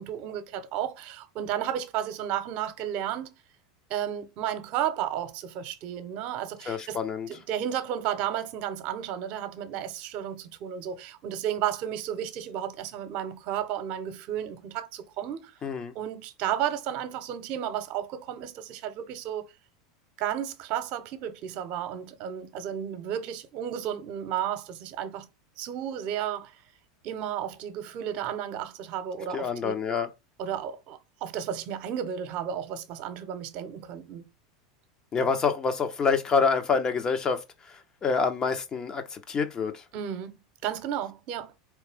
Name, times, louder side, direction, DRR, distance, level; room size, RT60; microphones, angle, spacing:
voice 1, 0.0-3.3 3.9-7.0 7.3-15.5 15.9-19.4 20.2-25.3 25.6-26.6 27.0-29.8 30.4-34.3 39.9-41.5, right 10 dB, 55° right, 0.9 m, -33 dB
voice 2, 6.7-7.3 15.6-15.9 29.3-30.1 35.1-39.8, left 5 dB, 30° left, 1.0 m, -27 dB
4.1 x 3.2 x 3.5 m
hypercardioid pair, 105°, 3 cm